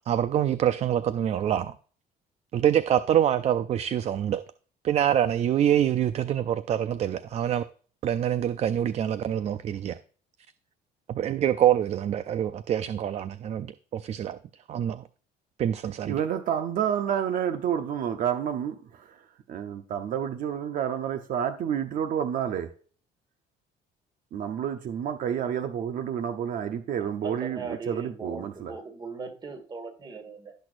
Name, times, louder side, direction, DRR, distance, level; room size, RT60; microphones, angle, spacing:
voice 1, 0.1-1.7 2.5-4.4 4.8-7.6 8.0-10.0 11.1-14.4 14.7-15.0 15.6-16.2, right 10 dB, 40° right, 0.4 m, -25 dB
voice 2, 16.1-22.7 24.3-28.7, right 9 dB, 55° right, 0.8 m, -29 dB
voice 3, 27.2-30.5, right 4 dB, 25° right, 1.7 m, -39 dB
17.0 x 6.2 x 2.5 m
cardioid pair, 140°, 17 cm